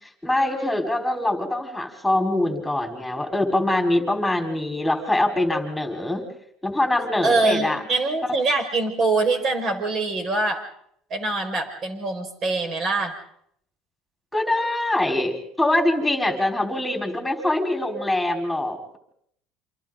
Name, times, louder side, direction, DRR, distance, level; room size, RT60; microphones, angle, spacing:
voice 1, 0.2-6.2 6.6-7.8 14.3-19.0, left 1 dB, 5° left, 2 dB, 4.5 m, -23 dB
voice 2, 7.2-10.6 11.1-13.1, right 3 dB, 45° right, 4 dB, 5.3 m, -24 dB
28.5 x 26.0 x 3.9 m, 0.70 s
supercardioid pair, 115°, 0 cm